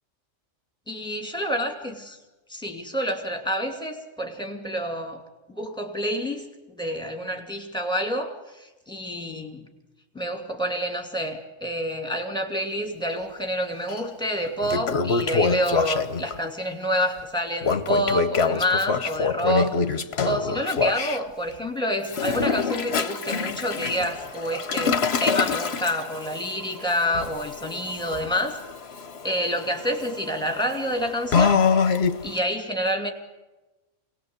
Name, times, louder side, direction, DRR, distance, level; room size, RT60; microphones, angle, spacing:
voice 1, 0.9-2.2 2.5-5.2 5.5-9.7 10.1-28.6 29.2-31.6 32.2-33.1, equal, 5° left, 3 dB, 2.6 m, -28 dB
Toilet flush, 13.9-14.0 14.5-16.4 17.6-21.2 22.0-32.4, left 5 dB, 55° left, 1.2 m, -26 dB
26.5 x 19.5 x 8.1 m, 1.1 s
omnidirectional pair, 1.3 m